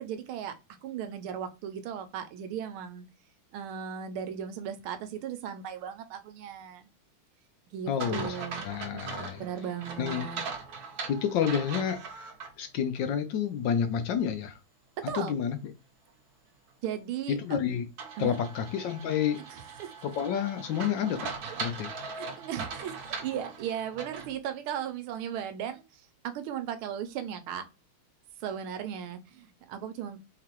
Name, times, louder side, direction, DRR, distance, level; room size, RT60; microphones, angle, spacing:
voice 1, 0.0-3.1 3.5-6.9 7.7-8.6 9.4-10.4 15.0-15.3 16.8-17.4 18.2-18.4 19.5-19.9 21.5-21.6 22.1-27.7 28.4-30.2, right 9 dB, 80° right, 1.5 m, -37 dB
voice 2, 7.9-8.4 8.6-9.4 10.0-10.3 11.1-12.0 12.6-14.6 15.1-15.6 17.3-17.9 18.2-19.4 20.0-21.3 21.6-21.9, left 8 dB, 75° left, 1.1 m, -29 dB
sound 1, 8.0-12.5 13.0-13.1 18.0-24.3, right 5 dB, 55° right, 1.2 m, -40 dB
3.9 x 3.6 x 2.9 m
omnidirectional pair, 2.3 m